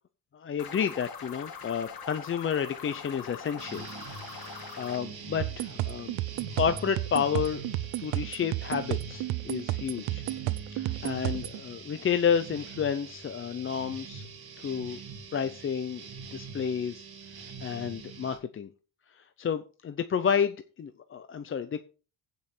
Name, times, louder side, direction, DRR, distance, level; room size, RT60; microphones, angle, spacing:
voice 1, 0.3-3.9 4.1-6.2 6.6-7.6 8.0-10.2 10.7-14.2 14.6-15.0 15.3-16.0 16.3-17.1 17.6-18.7 19.1-21.9, left 7 dB, 25° left, 10 dB, 0.5 m, -31 dB
sound 1, 0.6-5.0, left 6 dB, 50° left, 1.9 m, -43 dB
sound 2, 3.6-18.4, right 5 dB, 50° right, 2.9 m, -44 dB
sound 3, 5.4-11.6, right 18 dB, 75° right, 0.7 m, -32 dB
16.0 x 5.5 x 4.4 m, 0.36 s
cardioid pair, 145°, 47 cm